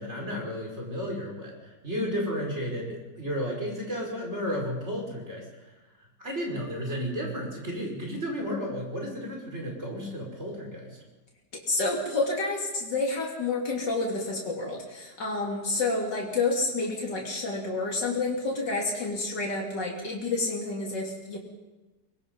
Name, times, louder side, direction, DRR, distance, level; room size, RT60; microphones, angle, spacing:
voice 1, 0.0-5.5 6.2-11.0, equal, 40° right, 0 dB, 5.7 m, -33 dB
voice 2, 11.7-21.4, left 3 dB, 85° left, -2 dB, 3.6 m, -29 dB
24.0 x 21.5 x 5.5 m, 1.1 s
omnidirectional pair, 1.8 m